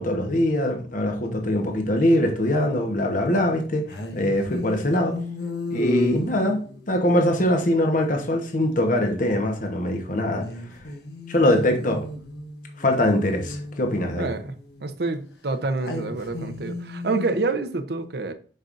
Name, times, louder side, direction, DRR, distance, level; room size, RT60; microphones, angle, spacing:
voice 1, 0.0-3.8 4.1-5.1 5.7-6.6 6.9-10.4 11.3-12.0 12.8-14.3, left 1 dB, 50° left, 1.1 m, -22 dB
sound 1, 1.4-1.5 3.9-8.2 10.4-15.0 15.8-17.4, left 2 dB, 70° left, 1.2 m, -34 dB
voice 2, 14.2-14.5 14.8-18.3, right 3 dB, 65° right, 0.8 m, -27 dB
7.8 x 5.4 x 2.6 m
head